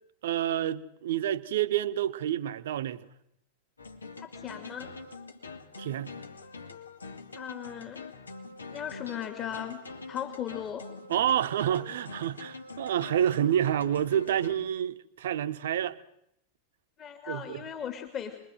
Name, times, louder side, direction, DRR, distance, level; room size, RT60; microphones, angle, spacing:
voice 1, 0.2-3.0 5.8-6.1 11.1-16.0 17.3-17.6, right 10 dB, 60° right, 1.1 m, -28 dB
sound 1, 3.8-14.6, left 4 dB, 75° left, 2.1 m, -44 dB
voice 2, 4.2-4.9 7.4-8.1 8.7-9.8 10.1-10.9 17.0-18.4, left 9 dB, 30° left, 2.5 m, -37 dB
28.0 x 22.5 x 7.8 m
figure-of-eight pair, 90°, 0 cm